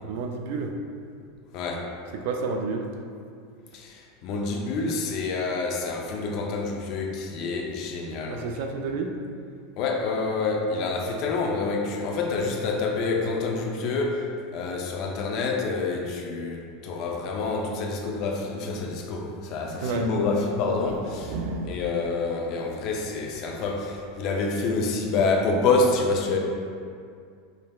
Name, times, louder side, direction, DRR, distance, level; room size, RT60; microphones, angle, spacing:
voice 1, 0.0-0.7 2.2-2.9 8.3-9.2 19.8-20.1 21.2-21.8, right 4 dB, 60° right, 4 dB, 0.4 m, -30 dB
voice 2, 1.5-1.9 3.7-8.5 9.8-21.4 21.6-26.4, left 3 dB, 40° left, 1 dB, 0.4 m, -27 dB
5.2 x 3.2 x 2.3 m, 2.3 s
supercardioid pair, 170°, 0 cm